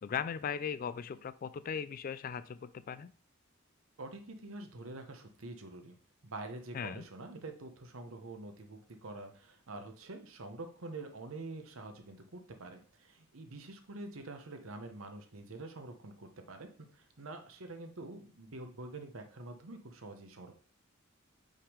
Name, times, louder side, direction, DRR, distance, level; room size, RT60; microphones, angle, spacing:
voice 1, 0.0-3.1 6.7-7.1, left 7 dB, 40° left, 15 dB, 0.3 m, -38 dB
voice 2, 4.0-6.0 6.2-20.6, right 2 dB, 75° right, 6 dB, 0.9 m, -46 dB
5.5 x 3.6 x 4.9 m, 0.43 s
head